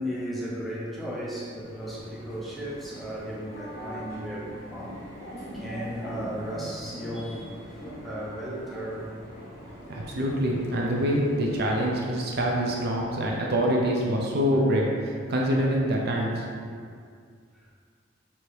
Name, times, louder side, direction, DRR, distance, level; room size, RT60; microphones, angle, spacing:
voice 1, 0.0-5.0 5.5-7.5 8.0-9.1 14.5-14.9, equal, ahead, -7 dB, 0.6 m, -35 dB
sound 1, 1.5-12.3, equal, 30° left, 1.5 m, -42 dB
voice 2, 9.9-14.9 15.3-16.4 16.7-16.8, equal, 50° right, -1 dB, 0.5 m, -25 dB
4.5 x 2.7 x 3.2 m, 2.1 s
head